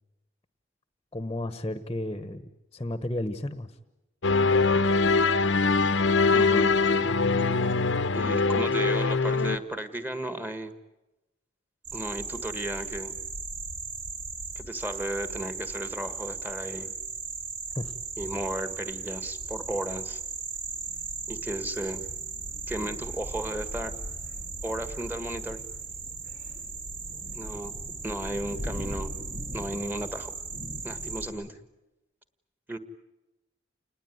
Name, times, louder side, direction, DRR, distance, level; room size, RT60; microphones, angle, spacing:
voice 1, 1.1-3.7 17.7-17.9, left 1 dB, 20° left, 11 dB, 1.0 m, -33 dB
sound 1, 4.2-9.6, left 4 dB, 75° left, 0.9 m, -23 dB
voice 2, 6.3-6.7 8.1-10.7 11.9-13.1 14.5-16.9 18.2-20.2 21.3-22.0 22.7-23.9 24.6-25.6 27.3-27.7 28.0-29.1 29.5-30.3 30.8-31.6 32.7-32.8, right 1 dB, 10° right, 9 dB, 1.5 m, -34 dB
sound 2, 11.8-31.3, right 3 dB, 65° right, 5.9 m, -37 dB
29.0 x 20.0 x 9.3 m, 1.0 s
head